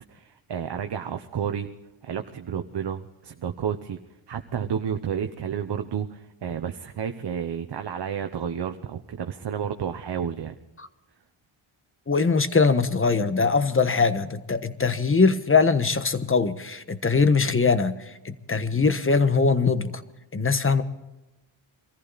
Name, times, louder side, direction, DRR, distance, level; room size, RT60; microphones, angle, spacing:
voice 1, 0.1-1.7 2.0-4.0 4.3-10.6, right 8 dB, 55° right, 6 dB, 1.0 m, -31 dB
voice 2, 12.1-20.0 20.3-20.8, left 4 dB, 25° left, 11 dB, 1.2 m, -22 dB
24.0 x 14.5 x 4.1 m, 1.0 s
cardioid pair, 100°, 50 cm